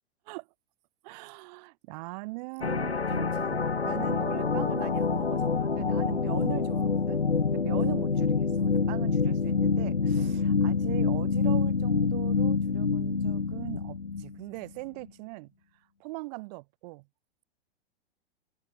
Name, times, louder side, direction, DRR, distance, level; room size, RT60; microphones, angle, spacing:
voice 1, 1.0-7.2 7.5-15.5 16.0-17.1, right 26 dB, 40° right, 2.0 m, -40 dB
sound 1, 2.6-14.4, left 5 dB, 85° left, 1.3 m, -27 dB
figure-of-eight pair, 105°, 31 cm